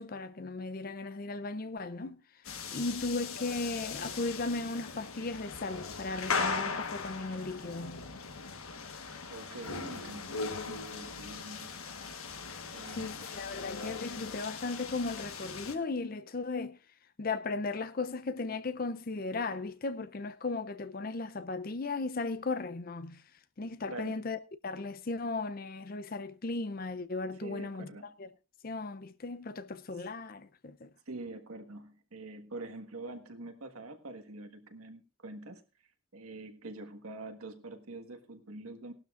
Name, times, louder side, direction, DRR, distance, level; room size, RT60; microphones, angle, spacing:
voice 1, 0.0-2.2 2.7-8.0 12.9-16.8 17.2-23.2 23.6-27.9 28.2-28.3 28.6-30.9, left 3 dB, 40° left, 0.5 m, -36 dB
sound 1, 2.4-15.7, left 4 dB, 80° left, 1.3 m, -39 dB
voice 2, 9.3-11.7 12.7-13.2 23.9-24.2 27.4-28.1 29.9-30.0 31.1-35.6 36.1-38.9, right 2 dB, 85° right, 1.6 m, -45 dB
18.5 x 12.0 x 2.5 m
head